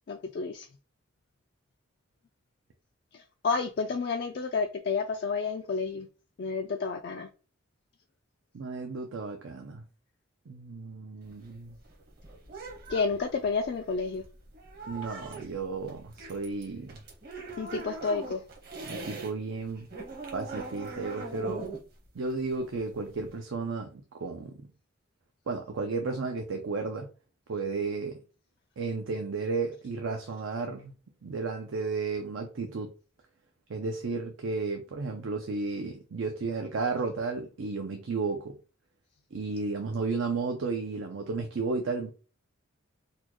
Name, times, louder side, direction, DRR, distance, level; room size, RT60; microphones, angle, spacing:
voice 1, 0.1-0.7 3.4-6.1 6.4-7.3 12.9-14.2 17.6-18.4, left 4 dB, 50° left, 0.3 m, -30 dB
voice 2, 8.5-9.8 10.5-11.7 14.9-17.0 18.8-19.9 20.3-21.7 22.1-24.6 25.5-27.1 27.5-28.2 28.8-30.9 31.2-32.9 33.7-38.6 39.3-42.1, right 4 dB, 70° right, 0.5 m, -33 dB
sound 1, 11.2-19.3 19.6-23.4, right 3 dB, 50° right, 1.1 m, -41 dB
4.1 x 2.3 x 3.0 m
head